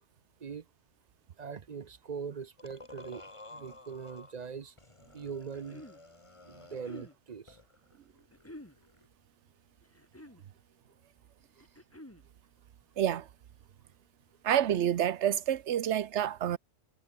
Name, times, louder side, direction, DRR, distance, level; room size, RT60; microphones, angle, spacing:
voice 1, 1.4-4.7 5.1-5.8 6.5-7.6 11.6-11.7, right 6 dB, 45° right, 0.7 m, -42 dB
sound 1, 2.6-4.4 4.8-7.2 7.5-9.1, left 2 dB, 30° left, 2.0 m, -52 dB
sound 2, 5.3-6.0 6.7-7.2 8.3-8.8 9.8-10.4 11.6-12.3, left 1 dB, 10° left, 2.3 m, -49 dB
voice 2, 14.4-16.6, right 10 dB, 90° right, 1.1 m, -28 dB
omnidirectional pair, 1.1 m